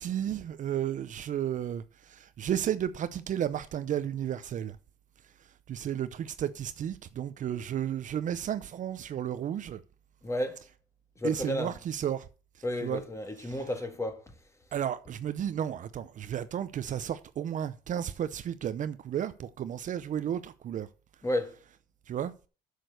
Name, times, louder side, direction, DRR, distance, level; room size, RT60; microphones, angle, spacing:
voice 1, 0.0-4.8 5.7-9.8 11.2-12.3 12.8-13.0 14.7-20.9 22.1-22.3, right 10 dB, 50° right, 0.6 m, -33 dB
voice 2, 10.2-10.6 11.2-11.8 12.6-14.4 21.2-21.6, left 1 dB, 15° left, 1.8 m, -32 dB
7.9 x 6.6 x 6.5 m
cardioid pair, 110°, 17 cm